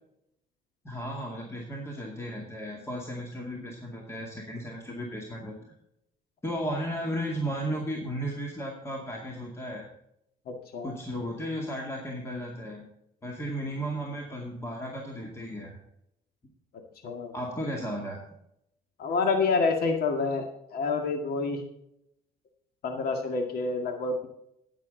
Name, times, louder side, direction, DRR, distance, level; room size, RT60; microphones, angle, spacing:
voice 1, 0.8-5.5 6.4-9.9 10.8-12.8 13.2-15.8 17.3-18.2, equal, 15° left, -1 dB, 2.2 m, -34 dB
voice 2, 10.5-11.0 17.0-17.3 19.0-21.6 22.8-24.3, left 4 dB, 65° left, 4 dB, 2.0 m, -28 dB
10.5 x 9.3 x 3.9 m, 0.77 s
cardioid pair, 110°, 17 cm